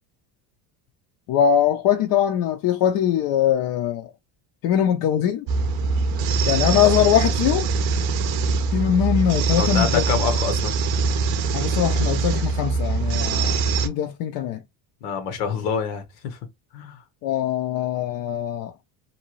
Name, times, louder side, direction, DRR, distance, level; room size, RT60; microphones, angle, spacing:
voice 1, 1.3-4.1 4.6-5.4 6.5-7.7 8.7-10.0 11.5-13.6 13.8-14.6 17.2-18.7, left 9 dB, 50° left, 0.5 m, -22 dB
sound 1, 5.5-13.9, right 4 dB, 50° right, 0.6 m, -23 dB
voice 2, 9.6-10.8 15.0-16.4 16.7-17.0, left 7 dB, 90° left, 1.0 m, -26 dB
2.7 x 2.3 x 2.9 m
cardioid pair, 125°, 47 cm